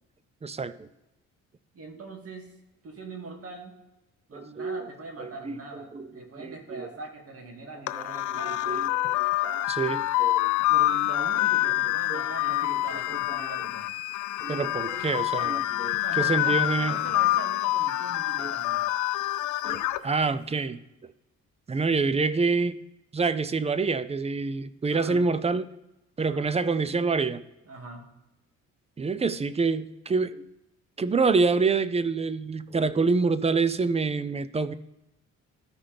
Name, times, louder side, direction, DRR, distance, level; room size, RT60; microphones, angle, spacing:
voice 1, 0.4-0.9 4.3-4.9 5.2-6.9 8.0-8.1 8.7-8.9 9.2-10.5 12.1-12.7 13.1-13.5 14.4-17.0 18.4-18.5 19.6-20.8 21.7-22.8 23.1-25.7 26.2-27.4 29.0-30.5 31.0-34.7, right 4 dB, 20° right, 15 dB, 0.5 m, -27 dB
voice 2, 1.7-2.6 2.8-3.7 4.3-8.9 10.6-13.9 16.0-18.9 24.9-25.2 26.2-26.6 27.7-28.1, right 2 dB, 50° right, 2 dB, 2.1 m, -42 dB
sound 1, 7.9-20.0, left 16 dB, 75° left, 0.5 m, -26 dB
14.0 x 5.6 x 3.4 m, 0.94 s
cardioid pair, 90°, 30 cm